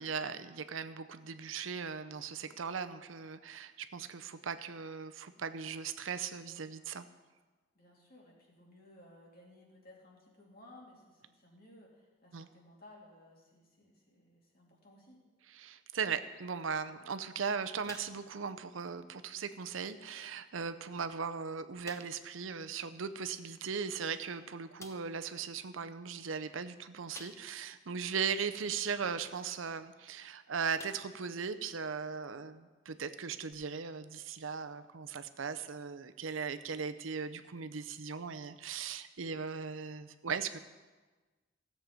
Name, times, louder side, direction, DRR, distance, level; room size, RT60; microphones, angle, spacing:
voice 1, 0.0-7.0 12.3-12.5 15.5-40.6, right 6 dB, 80° right, 11 dB, 0.6 m, -38 dB
voice 2, 7.7-15.2, left 1 dB, 50° left, -2 dB, 2.8 m, -58 dB
sound 1, 17.9-18.5 18.9-19.0 19.6-19.7 20.6-20.7 21.0-21.1 21.8-22.3 23.9-24.0 24.8-25.2 27.1-27.7 28.2-28.3 30.1-30.3 30.8-31.3 31.7-31.8 33.5-33.6, left 3 dB, 15° left, 0.6 m, -52 dB
16.0 x 7.6 x 5.1 m, 1.3 s
head